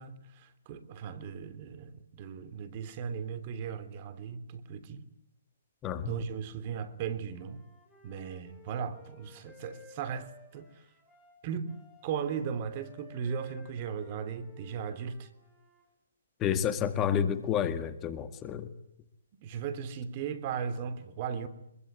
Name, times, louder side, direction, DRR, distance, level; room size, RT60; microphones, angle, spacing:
voice 1, 0.0-5.0 6.1-7.6 8.0-10.7 11.4-11.7 12.0-15.3 19.4-21.5, right 7 dB, 40° right, 3.1 m, -37 dB
voice 2, 5.8-6.2 16.4-18.7, left 8 dB, 20° left, 1.9 m, -30 dB
Wind instrument woodwind instrument, 7.3-15.9, left 4 dB, 5° left, 7.5 m, -57 dB
24.5 x 23.0 x 9.5 m
figure-of-eight pair, 130°, 0 cm